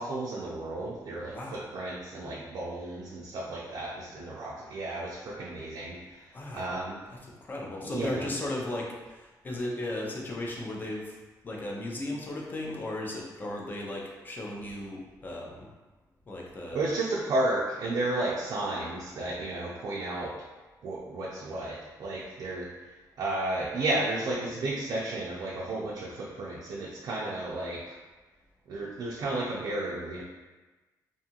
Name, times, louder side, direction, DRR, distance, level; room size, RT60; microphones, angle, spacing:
voice 1, 0.0-7.0 7.8-8.3 16.7-20.3 20.8-28.0 28.7-30.2, right 2 dB, 60° right, -4 dB, 0.4 m, -33 dB
voice 2, 6.3-6.7 7.1-11.2 11.4-15.7 16.3-16.9, left 1 dB, 25° left, -2 dB, 0.5 m, -36 dB
2.6 x 2.4 x 2.8 m, 1.2 s
cardioid pair, 140°, 7 cm